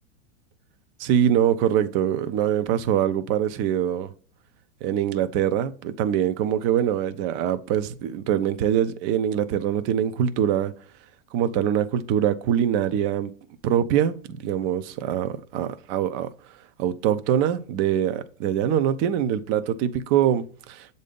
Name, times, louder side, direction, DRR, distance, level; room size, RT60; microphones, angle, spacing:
voice 1, 1.0-4.1 4.8-10.7 11.3-13.3 13.6-14.2 14.4-16.3 16.8-20.9, right 10 dB, 35° right, 0.5 m, -23 dB
7.4 x 2.7 x 5.1 m
supercardioid pair, 135°, 37 cm